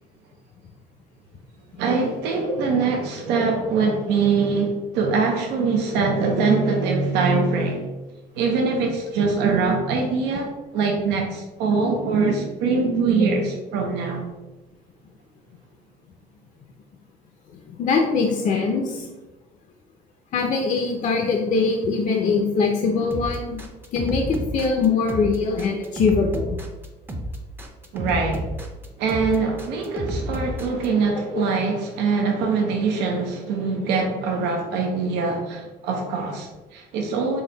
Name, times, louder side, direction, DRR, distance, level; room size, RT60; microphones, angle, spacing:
voice 1, 1.8-7.9 8.4-14.3 27.9-28.5 29.0-37.4, right 4 dB, 90° right, 1 dB, 0.6 m, -23 dB
voice 2, 17.7-19.1 20.3-23.6 23.9-26.6, left 4 dB, 50° left, 1 dB, 0.5 m, -22 dB
sound 1, 23.1-30.9, right 1 dB, 10° right, 0.5 m, -31 dB
3.9 x 2.2 x 3.8 m, 1.1 s
cardioid pair, 110°, 17 cm